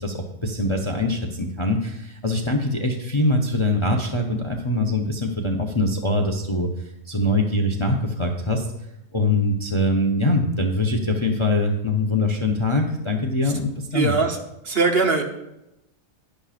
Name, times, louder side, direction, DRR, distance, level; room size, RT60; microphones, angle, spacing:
voice 1, 0.0-6.7 7.1-8.7 9.1-14.1, left 1 dB, 30° left, 2 dB, 0.6 m, -23 dB
voice 2, 13.9-14.4 14.6-15.2, right 4 dB, 50° right, 3 dB, 1.0 m, -21 dB
11.5 x 10.0 x 2.5 m, 0.89 s
omnidirectional pair, 1.5 m